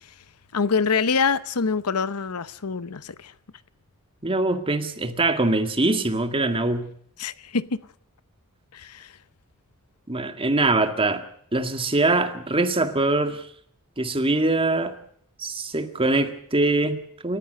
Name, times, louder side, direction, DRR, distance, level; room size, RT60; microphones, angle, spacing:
voice 1, 0.5-3.3 7.2-7.7 8.7-9.1, left 5 dB, 85° left, 0.9 m, -25 dB
voice 2, 4.2-6.9 10.1-11.2 11.5-13.5 14.0-15.0 15.4-17.4, right 2 dB, 25° right, 1.9 m, -23 dB
28.0 x 14.5 x 6.5 m
head